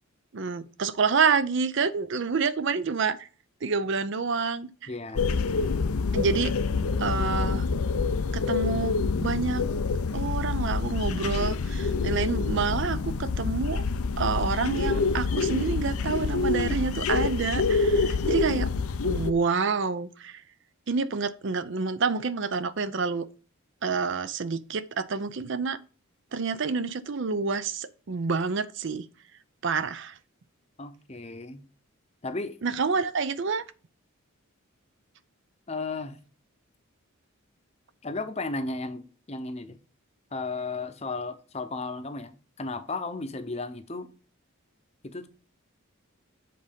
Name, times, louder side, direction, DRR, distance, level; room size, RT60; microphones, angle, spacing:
voice 1, 0.3-3.3 3.6-4.9 6.1-6.6 7.0-7.7 8.3-9.7 10.1-13.8 14.2-18.7 19.0-20.4 20.9-23.2 23.8-25.8 26.3-29.1 29.6-30.2 32.6-33.6, right 5 dB, 55° right, 0.5 m, -28 dB
voice 2, 4.9-5.3 30.8-31.6 32.2-32.6 35.7-36.2 38.0-39.8 40.3-44.1 45.0-45.3, left 3 dB, 30° left, 0.7 m, -34 dB
sound 1, 5.2-19.3, left 4 dB, 80° left, 0.6 m, -27 dB
7.6 x 3.9 x 5.2 m
head